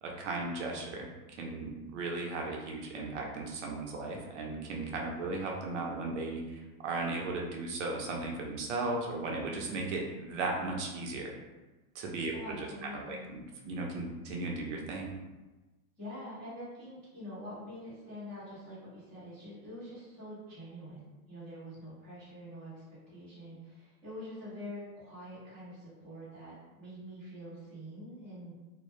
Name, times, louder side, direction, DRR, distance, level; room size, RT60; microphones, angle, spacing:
voice 1, 0.0-1.1 1.4-11.3 11.9-12.7 13.1-15.1, right 3 dB, 55° right, 0 dB, 0.5 m, -36 dB
voice 2, 12.3-13.3 16.0-28.5, equal, 5° left, -19 dB, 0.4 m, -45 dB
2.1 x 2.0 x 2.9 m, 1.1 s
supercardioid pair, 155°, 45 cm